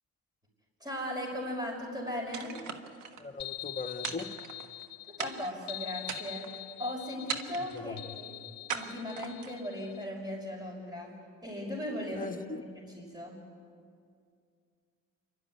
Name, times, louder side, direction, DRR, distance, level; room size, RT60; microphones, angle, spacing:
voice 1, 0.8-2.5 5.2-6.5 6.8-8.3 8.7-11.1 11.4-12.3 12.8-13.4, left 1 dB, 15° right, -1 dB, 5.8 m, -37 dB
sound 1, 2.3-3.2 4.0-4.8 5.2-5.6 6.0-6.6 7.3-7.8 8.7-9.6, right 6 dB, 85° right, 1.5 m, -39 dB
voice 2, 3.2-4.3 7.6-8.0 12.1-12.6, left 3 dB, 25° left, 5 dB, 1.4 m, -39 dB
sound 2, 3.4-10.0, left 16 dB, 60° left, 0.8 m, -44 dB
27.5 x 12.5 x 9.5 m, 2.3 s
cardioid pair, 90°, 30 cm